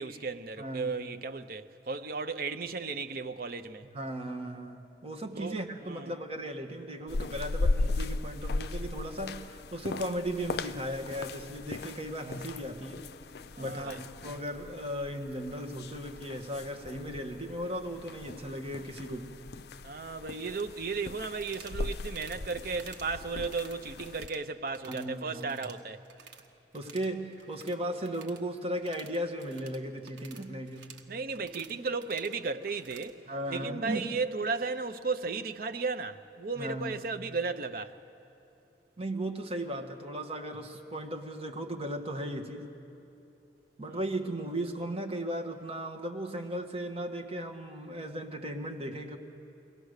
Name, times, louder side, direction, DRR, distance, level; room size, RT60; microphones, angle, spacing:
voice 1, 0.0-3.8 5.3-5.5 5.9-6.1 13.5-14.0 19.8-26.0 31.1-33.2 33.5-37.9 43.9-44.0, right 4 dB, 55° right, 0.7 m, -35 dB
voice 2, 0.6-0.9 3.9-13.1 13.6-19.4 24.9-25.6 26.7-30.9 33.3-34.0 36.6-37.0 39.0-42.7 43.8-49.2, right 1 dB, 35° right, 1.3 m, -36 dB
sound 1, 7.1-24.3, left 2 dB, 60° left, 0.5 m, -37 dB
sound 2, 21.4-21.8 22.1-22.4 22.7-23.1 23.4-24.4 24.7-25.1 25.4-26.5 26.7-33.1, right 6 dB, 80° right, 1.2 m, -52 dB
22.5 x 18.0 x 6.6 m
head